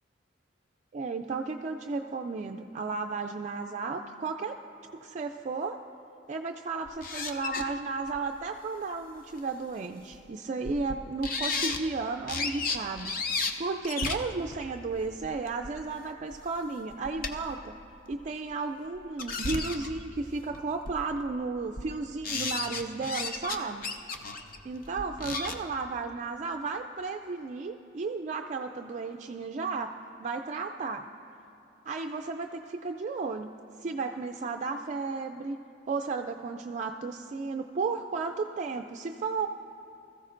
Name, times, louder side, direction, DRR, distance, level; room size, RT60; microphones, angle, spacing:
voice 1, 0.9-4.6 5.0-5.8 6.3-17.8 18.1-23.9 24.6-29.9 30.2-31.1 31.9-33.5 33.8-35.6 35.9-39.5, right 4 dB, 40° right, 4 dB, 0.4 m, -34 dB
sound 1, 6.9-7.6 8.1-8.2 9.4-9.5 10.1-10.2 10.6-10.9 11.2-11.8 12.3-13.5 13.8-15.7 16.3-16.4 16.7-17.5 18.1-18.2 18.9-20.0 20.5-20.6 20.8-21.2 21.6-21.9 22.2-23.6 23.8-25.6, left 4 dB, 45° left, 0.7 m, -33 dB
21.5 x 14.5 x 2.5 m, 2.9 s
head